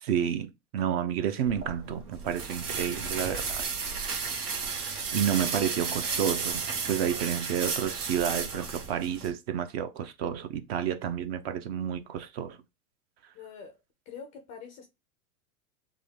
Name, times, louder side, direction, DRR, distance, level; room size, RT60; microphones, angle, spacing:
voice 1, 0.0-3.6 5.1-12.6, right 9 dB, 45° right, 0.5 m, -30 dB
sound 1, 1.5-9.3, right 5 dB, 75° right, 1.3 m, -33 dB
voice 2, 13.3-13.8 14.1-14.8, left 6 dB, 20° left, 0.3 m, -45 dB
3.6 x 2.3 x 3.2 m
hypercardioid pair, 130°, 45 cm